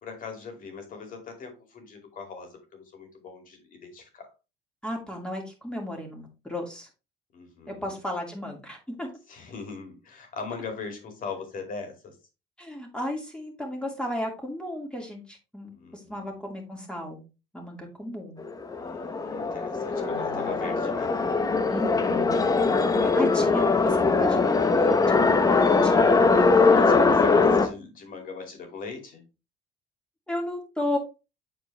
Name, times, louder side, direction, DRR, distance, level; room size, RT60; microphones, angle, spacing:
voice 1, 0.0-4.3 7.3-8.0 9.3-12.2 15.7-16.3 18.8-21.1 23.0-23.5 26.7-29.2, left 5 dB, 55° left, 4 dB, 2.7 m, -40 dB
voice 2, 4.8-6.9 7.7-9.1 12.6-17.2 17.5-18.4 20.1-20.5 21.7-22.5 23.0-26.8 30.3-31.0, left 1 dB, 5° left, 0 dB, 2.5 m, -34 dB
sound 1, 18.4-27.7, left 4 dB, 20° left, 0.8 m, -21 dB
8.2 x 4.4 x 3.4 m, 0.29 s
cardioid pair, 110°, 17 cm